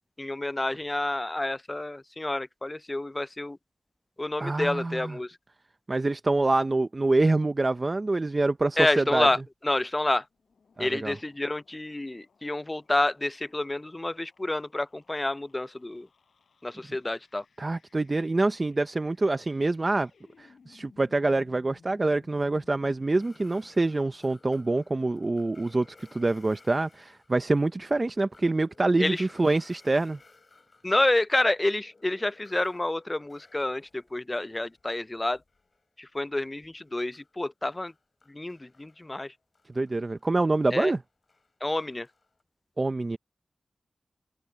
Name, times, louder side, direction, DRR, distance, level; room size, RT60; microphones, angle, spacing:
voice 1, 0.2-3.6 4.2-5.3 8.8-9.4 9.6-10.2 10.8-16.1 16.6-17.4 29.0-29.2 30.8-35.4 36.0-37.9 38.3-39.3 40.7-40.9 41.6-42.1, left 2 dB, 20° left, 0.3 m, -28 dB
voice 2, 4.4-5.2 5.9-9.3 10.8-11.2 17.6-20.1 20.4-25.9 26.1-30.2 39.7-41.0 42.8-43.2, right 2 dB, 30° right, 0.5 m, -26 dB
sound 1, 10.3-26.7, left 5 dB, 75° left, 7.3 m, -62 dB
sound 2, 23.2-31.1 31.4-36.0 36.3-42.4, left 3 dB, 40° left, 5.1 m, -59 dB
wide cardioid pair, 125°, 0 cm